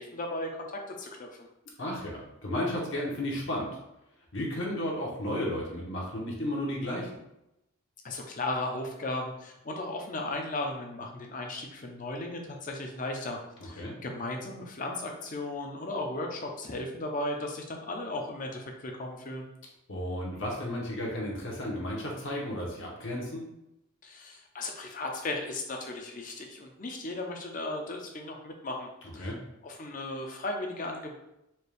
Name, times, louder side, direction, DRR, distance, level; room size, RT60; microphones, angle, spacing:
voice 1, 0.0-1.5 8.0-19.5 24.0-29.3 29.6-31.2, left 2 dB, 40° left, 2 dB, 0.5 m, -36 dB
voice 2, 1.8-3.7 4.3-7.1 13.8-13.9 19.9-23.4 29.0-29.4, left 1 dB, 65° left, -2 dB, 0.9 m, -33 dB
4.3 x 2.3 x 3.3 m, 0.87 s
head